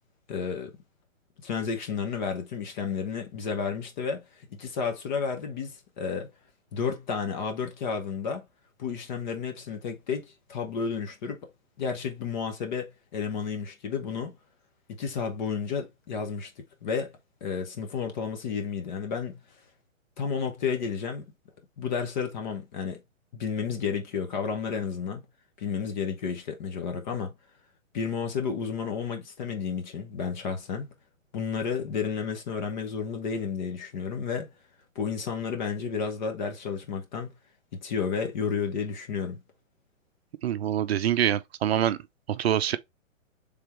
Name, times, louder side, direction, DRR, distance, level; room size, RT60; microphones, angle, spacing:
voice 1, 0.3-0.7 1.4-6.3 6.7-8.4 8.8-11.4 11.8-14.4 14.9-19.4 20.2-21.2 21.8-23.0 23.3-25.2 25.6-27.3 27.9-30.9 31.3-34.5 34.9-37.3 37.7-39.4, left 6 dB, 35° left, 0.9 m, -31 dB
voice 2, 40.4-42.0 42.3-42.8, right 11 dB, 50° right, 0.6 m, -25 dB
3.5 x 3.4 x 4.4 m
hypercardioid pair, 150°, 40 cm